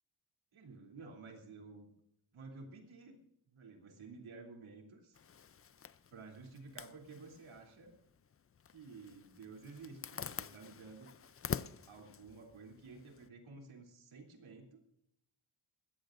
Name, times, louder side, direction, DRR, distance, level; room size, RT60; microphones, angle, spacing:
voice 1, 0.5-1.9 2.3-3.2 3.5-5.2 6.1-7.9 8.7-11.1 11.9-14.8, right 4 dB, 85° right, 2 dB, 3.3 m, -52 dB
Zipper (clothing), 5.1-13.3, left 7 dB, 30° left, 0.4 m, -47 dB
21.5 x 15.5 x 2.6 m, 0.77 s
wide cardioid pair, 95°, 47 cm